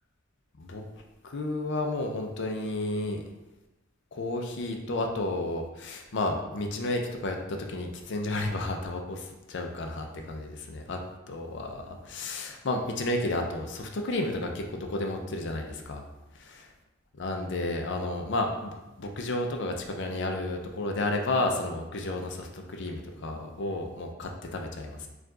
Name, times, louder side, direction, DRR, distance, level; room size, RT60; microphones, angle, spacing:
voice 1, 1.2-3.2 4.1-11.0 11.3-16.0 16.3-16.7 17.2-25.1, left 2 dB, 60° left, 3 dB, 0.5 m, -32 dB
4.6 x 2.4 x 3.7 m, 1.0 s
head